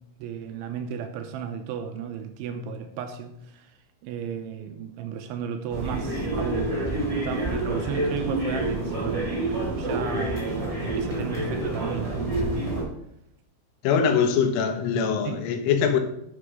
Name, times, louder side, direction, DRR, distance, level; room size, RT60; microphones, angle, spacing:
voice 1, 0.2-3.8 4.0-6.7 7.1-12.6 15.2-15.4, right 7 dB, 80° right, 7 dB, 2.9 m, -34 dB
sound 1, 5.7-12.8, right 1 dB, 10° right, 2.6 m, -28 dB
voice 2, 13.8-16.0, left 6 dB, 75° left, 6 dB, 3.7 m, -22 dB
11.5 x 7.1 x 4.9 m, 0.78 s
omnidirectional pair, 5.9 m